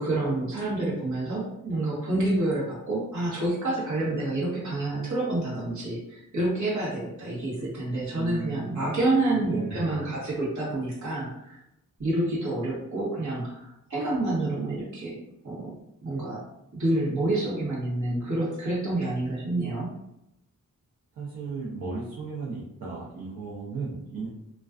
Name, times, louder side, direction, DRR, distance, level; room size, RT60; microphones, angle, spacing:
voice 1, 0.0-11.6 12.0-15.2 15.4-15.8 16.0-16.4 16.7-19.9, right 2 dB, 60° right, -6 dB, 1.0 m, -28 dB
voice 2, 8.1-8.9 9.4-10.2 21.1-24.3, right 4 dB, 85° right, -6 dB, 0.6 m, -35 dB
2.4 x 2.2 x 2.3 m, 0.81 s
wide cardioid pair, 160°, 33 cm